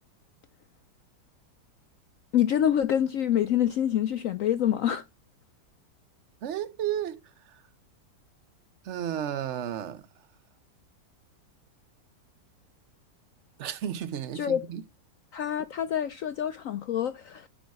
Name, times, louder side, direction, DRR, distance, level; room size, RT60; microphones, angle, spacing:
voice 1, 2.3-5.0 14.3-14.6 15.3-17.5, left 10 dB, 75° left, 0.7 m, -26 dB
voice 2, 6.4-7.2 8.8-10.0 13.6-14.8, right 10 dB, 65° right, 0.7 m, -32 dB
10.5 x 3.9 x 4.7 m
omnidirectional pair, 2.0 m